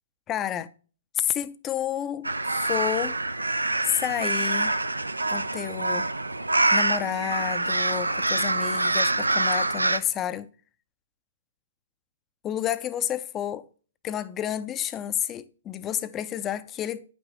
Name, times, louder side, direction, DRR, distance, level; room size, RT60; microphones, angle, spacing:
voice 1, 0.3-0.7 1.1-3.2 3.8-4.7 5.3-6.1 6.7-10.5 12.4-13.7 14.0-17.1, left 10 dB, 20° left, 0.5 m, -30 dB
sound 1, 2.2-10.0, right 2 dB, 85° right, 0.5 m, -25 dB
9.6 x 6.1 x 3.1 m
figure-of-eight pair, 125°, 0 cm